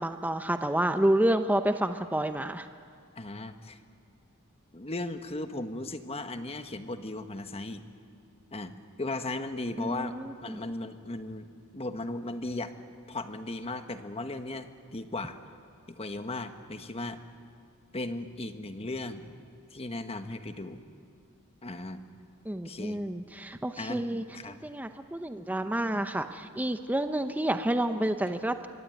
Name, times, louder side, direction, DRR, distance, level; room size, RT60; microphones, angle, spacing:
voice 1, 0.0-2.7 9.8-10.6 22.5-28.7, right 1 dB, 5° right, 8 dB, 0.7 m, -29 dB
voice 2, 3.2-3.8 4.7-7.8 8.5-12.7 13.1-15.4 15.9-17.2 17.9-19.3 19.7-20.8 21.6-22.0 22.6-23.0 23.8-24.0 24.3-24.6, left 2 dB, 25° left, 8 dB, 1.3 m, -37 dB
25.5 x 23.0 x 9.2 m, 2.3 s
head